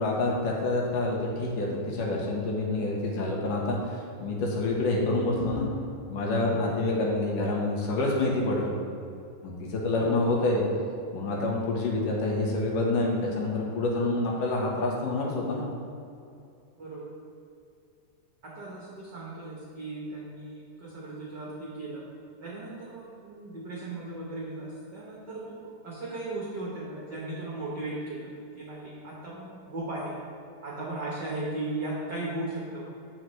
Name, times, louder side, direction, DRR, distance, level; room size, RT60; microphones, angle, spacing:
voice 1, 0.0-5.7 6.1-8.7 9.4-10.6 11.1-15.6, left 2 dB, 85° left, -2 dB, 2.9 m, -27 dB
voice 2, 10.0-10.5 16.8-17.1 18.4-22.0 22.4-30.2 30.6-32.8, right 2 dB, 80° right, -4 dB, 0.9 m, -37 dB
13.5 x 4.8 x 3.2 m, 2.6 s
omnidirectional pair, 3.7 m